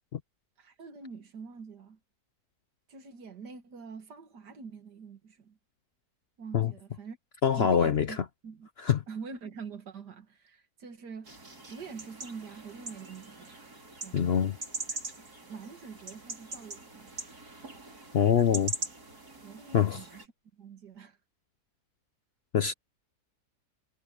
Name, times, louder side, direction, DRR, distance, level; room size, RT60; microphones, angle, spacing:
voice 1, 0.6-2.0 2.9-5.6 6.4-7.2 7.5-8.2 8.4-8.7 9.1-11.4 11.6-13.6 14.0-14.3 15.2-17.1 19.4-20.3 20.5-21.2, right 5 dB, 85° right, 2.4 m, -45 dB
voice 2, 7.4-8.1 8.8-9.0 14.1-14.6 18.1-18.7 19.7-20.0 22.5-22.7, left 8 dB, 55° left, 0.7 m, -24 dB
sound 1, 11.3-20.3, right 3 dB, 70° right, 5.6 m, -42 dB
omnidirectional pair, 1.7 m